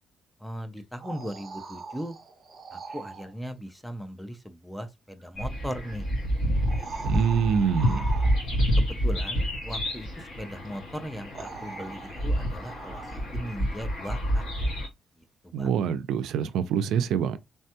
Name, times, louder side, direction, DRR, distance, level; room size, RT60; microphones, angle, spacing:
voice 1, 0.4-2.2 2.7-6.1 6.7-7.2 8.8-13.0 13.3-14.4 15.4-15.7, equal, ahead, 0.3 m, -38 dB
sound 1, 0.8-3.3 5.2-5.3 6.6-8.7 10.6-10.7 11.3-13.4 16.5-16.6, right 4 dB, 30° right, 0.8 m, -41 dB
sound 2, 5.4-14.9, equal, 70° left, 2.0 m, -28 dB
voice 2, 7.0-8.1 15.5-17.4, right 7 dB, 85° right, 0.3 m, -25 dB
3.3 x 2.2 x 2.7 m
cardioid pair, 175°, 0 cm